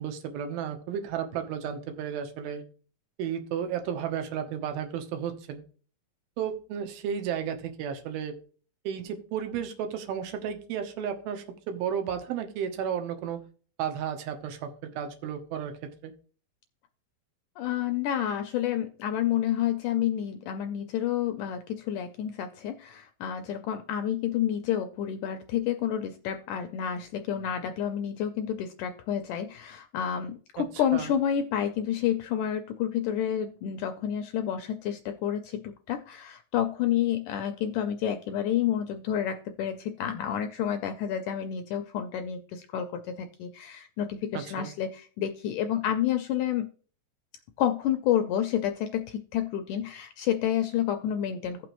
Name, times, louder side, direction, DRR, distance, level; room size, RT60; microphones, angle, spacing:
voice 1, 0.0-2.6 3.2-5.6 6.4-8.3 8.8-13.4 13.8-15.7 16.0-16.1 30.6-30.7 30.9-31.1 44.3-44.7, right 8 dB, 90° right, 6 dB, 2.8 m, -33 dB
voice 2, 17.6-35.6 35.9-46.7 47.6-51.6, left 10 dB, 80° left, 6 dB, 1.8 m, -29 dB
15.0 x 6.0 x 3.0 m, 0.42 s
omnidirectional pair, 4.1 m